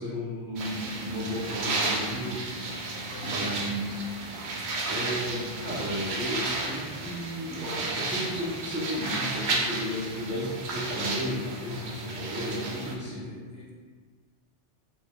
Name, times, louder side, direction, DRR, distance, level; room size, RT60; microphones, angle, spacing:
voice 1, 0.0-2.4 3.2-4.0 4.8-13.3, equal, 15° right, -8 dB, 0.5 m, -34 dB
sound 1, 0.6-12.9, right 3 dB, 70° right, 0.8 m, -33 dB
voice 2, 3.1-4.0 13.0-13.7, left 2 dB, 65° left, -3 dB, 0.8 m, -43 dB
4.4 x 2.7 x 2.3 m, 1.5 s
omnidirectional pair, 1.2 m